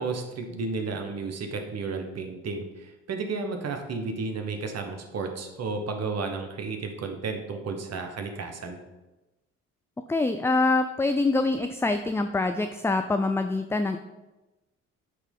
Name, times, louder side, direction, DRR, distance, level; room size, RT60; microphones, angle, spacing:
voice 1, 0.0-8.8, right 4 dB, 55° right, 5 dB, 1.2 m, -32 dB
voice 2, 10.1-14.0, left 3 dB, 10° left, 7 dB, 0.4 m, -25 dB
8.1 x 3.1 x 5.3 m, 1.1 s
supercardioid pair, 60°, 31 cm